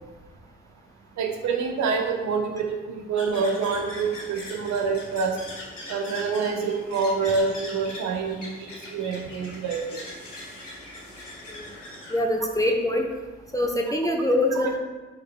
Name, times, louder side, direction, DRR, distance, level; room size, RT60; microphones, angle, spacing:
voice 1, 1.2-5.4 5.9-10.0, right 5 dB, 50° right, 3 dB, 1.0 m, -27 dB
sound 1, 3.2-12.2, left 1 dB, 85° left, 0.9 m, -41 dB
voice 2, 12.1-13.1 13.5-14.8, left 1 dB, 10° left, 1 dB, 0.9 m, -24 dB
10.5 x 4.8 x 2.4 m, 1.2 s
figure-of-eight pair, 40°, 36 cm